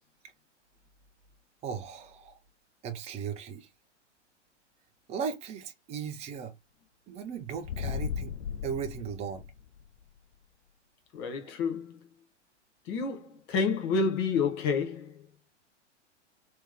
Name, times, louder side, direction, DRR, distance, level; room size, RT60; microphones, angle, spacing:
voice 1, 1.6-2.4 2.8-3.7 5.1-6.5 7.1-8.3 8.6-9.4, right 7 dB, 20° right, 0.6 m, -37 dB
sound 1, 7.5-10.0, left 8 dB, 60° left, 0.7 m, -36 dB
voice 2, 11.1-12.0 12.9-15.2, left 5 dB, 35° left, 1.2 m, -29 dB
3.4 x 3.1 x 3.4 m
figure-of-eight pair, 110°, 36 cm